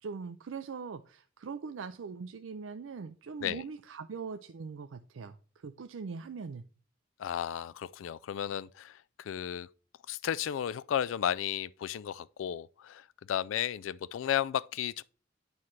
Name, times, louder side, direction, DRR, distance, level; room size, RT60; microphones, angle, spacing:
voice 1, 0.0-6.6, right 5 dB, 85° right, 0.4 m, -41 dB
voice 2, 7.2-9.7 10.1-15.0, left 10 dB, 85° left, 0.3 m, -34 dB
9.5 x 3.2 x 5.8 m
head